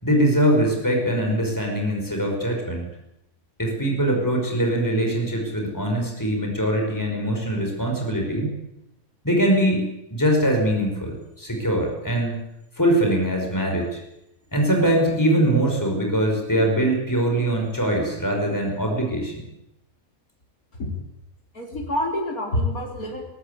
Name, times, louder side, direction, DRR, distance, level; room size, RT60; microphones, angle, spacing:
voice 1, 0.0-2.9 3.6-8.5 9.2-12.4 12.8-14.0 14.5-19.4, right 1 dB, 15° left, 2 dB, 5.5 m, -22 dB
voice 2, 21.5-23.2, left 1 dB, 85° left, 0 dB, 4.4 m, -26 dB
21.5 x 18.0 x 8.4 m, 0.85 s
omnidirectional pair, 1.5 m